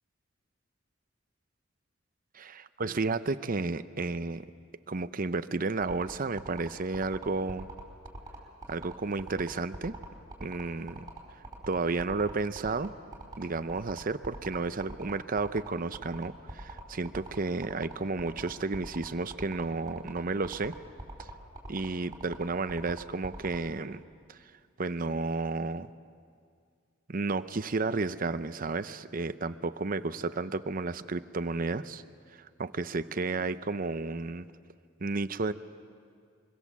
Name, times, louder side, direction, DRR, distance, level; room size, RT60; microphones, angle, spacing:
voice 1, 2.8-4.4 4.9-7.7 8.7-10.0 10.4-11.1 11.7-12.9 13.4-20.7 21.2-21.3 21.7-24.0 24.3-24.4 24.8-25.9 27.1-32.0 32.3-34.5 35.0-35.5, right 3 dB, 45° right, 12 dB, 0.7 m, -32 dB
sound 1, 5.8-23.6, right 2 dB, 20° right, 4.7 m, -43 dB
25.0 x 24.0 x 7.4 m, 2.1 s
head